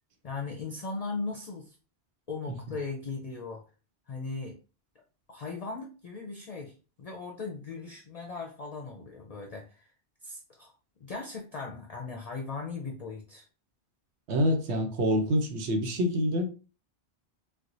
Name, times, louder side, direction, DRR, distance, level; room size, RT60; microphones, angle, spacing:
voice 1, 0.2-1.8 2.3-3.6 4.1-4.6 5.3-9.9 10.2-10.7 11.0-13.4, left 4 dB, 45° left, 0.5 m, -38 dB
voice 2, 14.3-16.5, equal, 90° right, 1.0 m, -26 dB
4.5 x 2.1 x 2.6 m
omnidirectional pair, 1.1 m